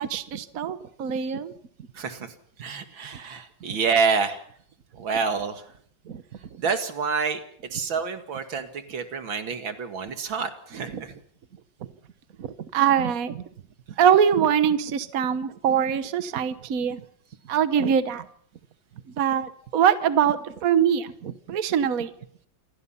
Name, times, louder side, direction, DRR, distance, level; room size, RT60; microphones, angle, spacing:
voice 1, 0.0-1.5 6.1-6.2 10.9-11.0 12.4-13.4 14.0-17.0 17.5-18.2 19.2-22.1, right 8 dB, 50° right, 12 dB, 1.5 m, -23 dB
voice 2, 1.9-4.4 5.0-5.7 6.6-11.2, right 5 dB, 85° right, 7 dB, 2.8 m, -28 dB
27.5 x 19.5 x 5.8 m, 0.63 s
omnidirectional pair, 2.1 m